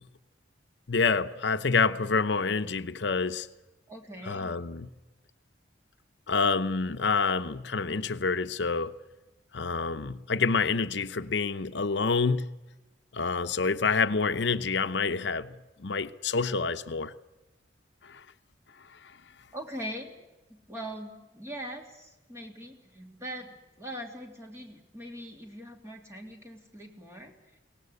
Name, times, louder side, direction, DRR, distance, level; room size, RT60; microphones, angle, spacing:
voice 1, 0.9-3.5 4.3-4.9 6.3-8.9 9.5-12.4 13.1-15.5 15.8-17.1 18.1-18.2, left 4 dB, 65° left, 0.8 m, -27 dB
voice 2, 3.9-4.5 19.5-20.1 20.5-27.3, equal, 15° right, 3.2 m, -41 dB
23.0 x 18.5 x 8.2 m
head